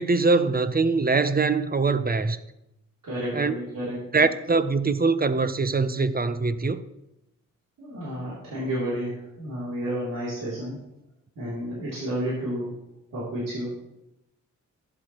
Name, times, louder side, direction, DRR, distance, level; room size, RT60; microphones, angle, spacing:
voice 1, 0.0-2.4 3.3-3.5 4.1-6.8, right 4 dB, 30° right, 0.7 m, -23 dB
voice 2, 3.0-4.0 7.8-10.8 11.4-12.7 13.1-13.7, equal, 85° right, 3.2 m, -31 dB
12.5 x 7.9 x 3.0 m
cardioid pair, 60°, 32 cm